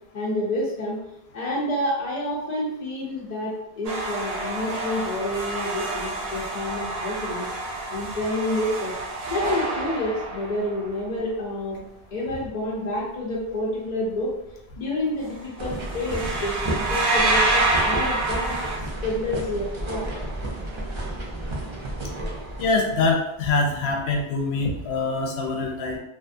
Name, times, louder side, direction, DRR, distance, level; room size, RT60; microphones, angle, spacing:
voice 1, 0.1-1.0 1.3-7.5 7.9-8.9 9.3-11.8 12.1-14.3 14.8-18.6 19.0-20.1, left 1 dB, 55° left, -4 dB, 0.5 m, -28 dB
sound 1, 3.8-11.0 15.2-15.5 15.7-18.8, right 2 dB, 65° right, 0.8 m, -27 dB
sound 2, 15.6-23.1, right 1 dB, 40° right, 0.4 m, -32 dB
voice 2, 22.6-26.0, left 3 dB, 90° left, 1 dB, 0.9 m, -24 dB
2.5 x 2.4 x 2.5 m, 0.86 s
omnidirectional pair, 1.0 m